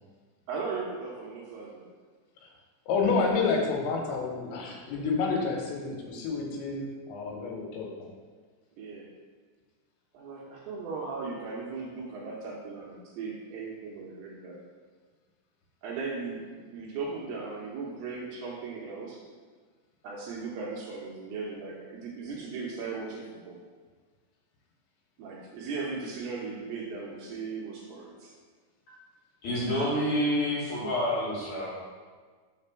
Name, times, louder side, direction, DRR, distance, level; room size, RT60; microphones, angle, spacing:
voice 1, 0.5-1.9 3.2-3.3 8.8-9.1 10.1-14.6 15.8-19.2 20.0-23.6 25.2-28.3, right 4 dB, 75° right, -3 dB, 2.4 m, -37 dB
voice 2, 2.9-8.1, left 4 dB, 80° left, 0 dB, 3.2 m, -29 dB
voice 3, 29.4-31.7, equal, 60° left, -9 dB, 2.1 m, -28 dB
6.0 x 4.3 x 5.6 m, 1.5 s
omnidirectional pair, 5.3 m